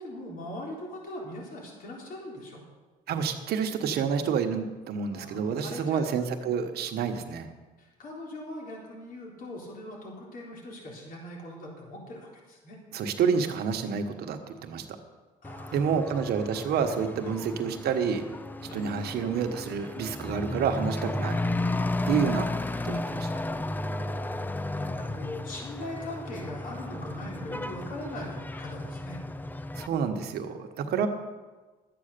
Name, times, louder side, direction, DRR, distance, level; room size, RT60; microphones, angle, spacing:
voice 1, 0.0-2.6 5.1-6.1 6.4-6.5 7.8-12.8 15.4-16.3 17.2-17.4 18.7-18.9 22.1-22.3 24.7-29.2, left 1 dB, 55° left, -1 dB, 3.7 m, -41 dB
voice 2, 3.1-7.5 12.9-14.8 15.7-18.2 18.7-21.4 22.1-22.5 22.8-23.3 29.7-31.1, right 6 dB, 70° right, 6 dB, 1.3 m, -28 dB
Truck / Accelerating revving vroom, 15.4-29.9, left 2 dB, 10° left, 0.5 m, -33 dB
12.5 x 8.8 x 6.8 m, 1.3 s
cardioid pair, 110°, 17 cm